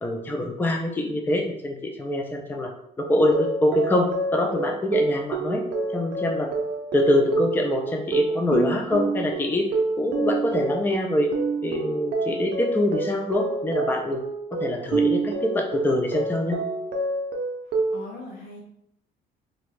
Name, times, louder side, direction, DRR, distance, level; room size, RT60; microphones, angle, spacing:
voice 1, 0.0-2.7 3.0-5.6 5.9-6.5 6.9-9.7 10.0-11.3 11.6-14.2 14.5-16.6, left 1 dB, 10° left, 2 dB, 0.4 m, -24 dB
sound 1, 3.3-18.0, right 3 dB, 65° right, 0.6 m, -28 dB
voice 2, 17.7-18.6, left 2 dB, 80° left, 0 dB, 0.9 m, -41 dB
2.8 x 2.5 x 3.2 m, 0.75 s
cardioid pair, 110°, 17 cm